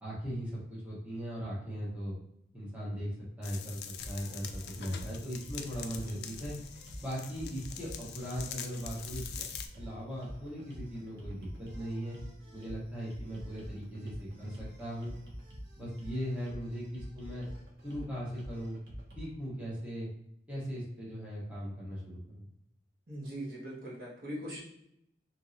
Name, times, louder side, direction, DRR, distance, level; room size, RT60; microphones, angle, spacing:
voice 1, 0.0-2.1 2.5-3.8 4.0-6.6 7.0-9.5 9.7-12.2 12.5-15.1 15.8-17.4 17.8-18.8 19.1-20.1 20.5-22.4, equal, 10° right, -8 dB, 1.0 m, -39 dB
sound 1, 3.4-9.7, left 7 dB, 65° left, 0.3 m, -44 dB
sound 2, 4.0-19.3, equal, 80° right, 0.8 m, -47 dB
voice 2, 23.1-24.6, equal, 55° right, -7 dB, 1.2 m, -41 dB
2.9 x 2.8 x 2.5 m, 0.76 s
head